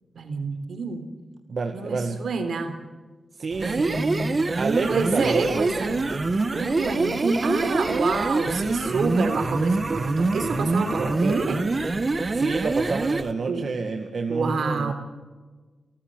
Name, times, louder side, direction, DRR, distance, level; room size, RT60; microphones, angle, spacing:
voice 1, 0.2-1.0 1.7-2.7 3.6-4.3 4.9-6.0 6.5-11.6 13.5-13.7 14.3-14.9, right 4 dB, 75° right, 8 dB, 3.5 m, -27 dB
voice 2, 1.5-2.2 3.3-4.0 4.6-5.7 12.3-14.9, right 4 dB, 60° right, 4 dB, 1.8 m, -28 dB
sound 1, 3.5-13.3, right 3 dB, 35° right, 1.2 m, -25 dB
29.0 x 14.0 x 7.8 m, 1.3 s
cardioid pair, 85°, 0 cm